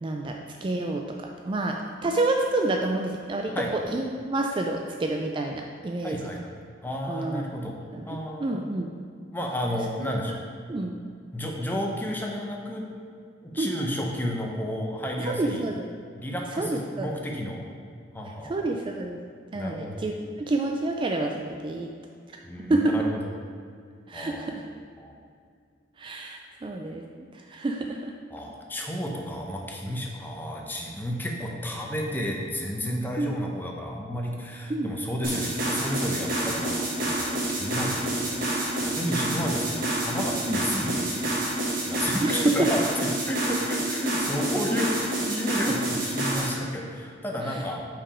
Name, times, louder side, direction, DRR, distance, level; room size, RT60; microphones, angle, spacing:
voice 1, 0.0-6.2 7.1-7.4 7.9-8.1 8.4-8.9 10.7-11.0 13.6-13.7 15.2-15.9 16.6-17.1 18.5-19.2 19.5-21.9 22.7-23.0 24.1-24.7 26.0-27.0 27.5-28.1 33.2-33.3 34.7-34.9 40.5-40.6 42.2-42.7 45.7-45.8 47.5-47.6, right 2 dB, 25° right, 2 dB, 0.3 m, -28 dB
voice 2, 6.0-7.8 8.1-8.6 9.3-10.5 11.3-12.8 13.4-15.6 16.2-17.6 18.1-18.7 19.5-20.0 22.4-23.2 24.1-24.6 25.0-25.1 28.3-44.9 45.2-47.8, equal, 10° left, 0 dB, 0.7 m, -32 dB
sound 1, 35.2-46.5, right 1 dB, 50° right, 1.6 m, -28 dB
5.9 x 4.9 x 4.8 m, 2.2 s
head